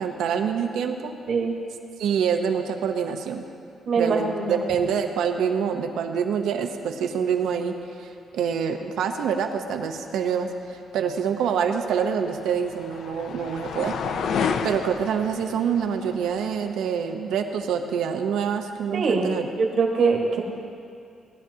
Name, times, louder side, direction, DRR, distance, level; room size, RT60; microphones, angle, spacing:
voice 1, 0.0-1.1 2.0-3.4 4.0-8.1 8.3-14.0 14.6-19.5, right 7 dB, 85° right, 5 dB, 0.8 m, -26 dB
voice 2, 3.9-4.6 18.9-19.3 19.6-20.4, right 4 dB, 50° right, 0 dB, 1.5 m, -23 dB
sound 1, 11.5-16.7, left 6 dB, 65° left, 0.5 m, -31 dB
18.0 x 12.0 x 2.8 m, 2.4 s
cardioid pair, 155°, 0 cm